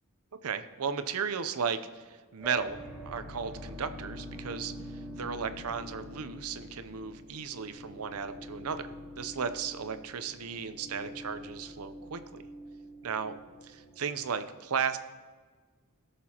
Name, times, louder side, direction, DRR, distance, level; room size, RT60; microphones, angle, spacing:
voice 1, 0.4-4.7 5.2-8.9 9.2-12.2 13.0-13.3 13.7-15.0, right 6 dB, 75° right, 11 dB, 0.6 m, -35 dB
sound 1, 2.4-14.3, left 1 dB, 10° right, 1.1 m, -45 dB
17.5 x 6.8 x 2.9 m, 1.5 s
head